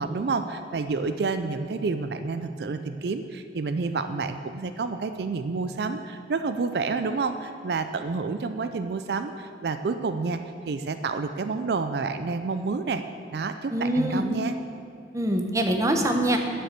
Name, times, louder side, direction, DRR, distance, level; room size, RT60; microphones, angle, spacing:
voice 1, 0.0-10.4 10.7-13.0 13.3-14.5, right 4 dB, 65° right, 9 dB, 0.4 m, -29 dB
voice 2, 13.7-14.2 15.1-16.4, right 1 dB, 20° right, 3 dB, 0.8 m, -24 dB
9.6 x 7.6 x 6.6 m, 2.5 s
head